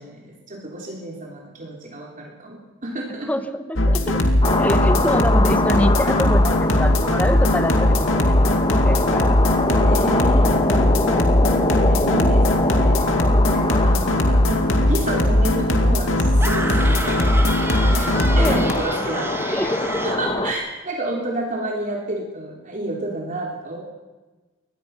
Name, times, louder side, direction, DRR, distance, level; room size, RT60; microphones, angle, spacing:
voice 1, 0.0-3.3 9.8-10.5 11.8-13.1 13.5-17.3 18.0-19.7 20.0-23.8, right 1 dB, 40° right, -1 dB, 3.4 m, -30 dB
voice 2, 3.2-4.2 4.6-8.3 8.8-9.4 18.4-18.7 19.5-20.0, equal, 10° left, 9 dB, 1.3 m, -25 dB
sound 1, 3.8-18.7, left 1 dB, 75° left, 2.6 m, -19 dB
sound 2, 4.4-20.5, left 2 dB, 25° left, 1.5 m, -25 dB
sound 3, 16.4-20.3, right 2 dB, 10° right, 1.9 m, -30 dB
24.0 x 19.5 x 5.8 m, 1.2 s
head